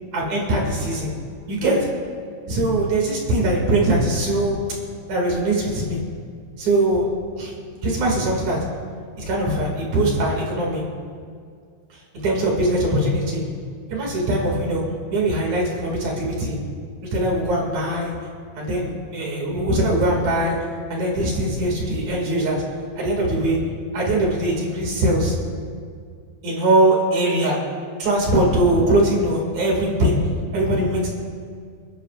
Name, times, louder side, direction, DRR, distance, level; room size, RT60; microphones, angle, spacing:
voice 1, 0.1-1.1 1.5-1.8 2.5-4.6 5.1-6.0 6.6-7.1 7.4-7.5 7.8-8.6 9.2-10.8 12.1-13.4 13.9-14.8 15.1-16.6 17.1-18.2 18.6-20.6 20.9-22.6 23.0-23.6 23.9-25.3 26.4-27.6 28.0-30.2 30.5-31.1, right 1 dB, 45° right, -2 dB, 3.1 m, -21 dB
28.5 x 11.0 x 2.5 m, 2.1 s
omnidirectional pair, 5.2 m